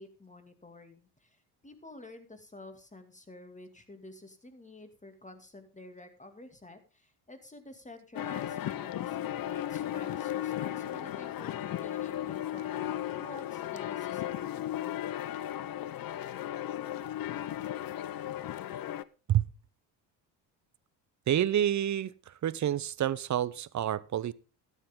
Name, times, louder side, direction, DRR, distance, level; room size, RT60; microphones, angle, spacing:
voice 1, 0.0-14.5, left 2 dB, 15° left, 8 dB, 2.3 m, -50 dB
sound 1, 8.2-19.0, left 12 dB, 45° left, 0.7 m, -35 dB
voice 2, 21.3-22.1 22.4-24.3, right 11 dB, 35° right, 19 dB, 0.7 m, -28 dB
12.5 x 9.9 x 3.7 m, 0.34 s
hypercardioid pair, 65°, 49 cm